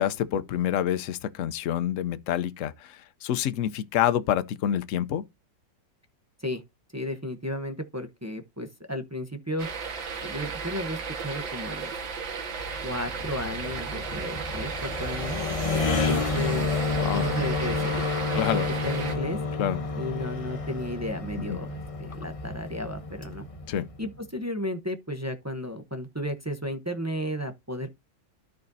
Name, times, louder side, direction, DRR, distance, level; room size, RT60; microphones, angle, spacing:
voice 1, 0.0-5.2 17.0-17.3 18.3-18.7 19.6-19.8 21.5-21.6 23.7-23.9, left 10 dB, 65° left, 0.8 m, -27 dB
voice 2, 6.9-9.7 10.2-11.9 12.8-15.4 15.9-16.8 17.1-18.0 18.3-19.4 20.0-23.5 24.0-27.9, equal, 20° right, 0.4 m, -33 dB
sound 1, 9.6-19.2, right 5 dB, 90° right, 2.3 m, -34 dB
sound 2, 12.6-24.2, left 4 dB, 35° left, 0.5 m, -30 dB
13.0 x 5.2 x 2.7 m
omnidirectional pair, 2.0 m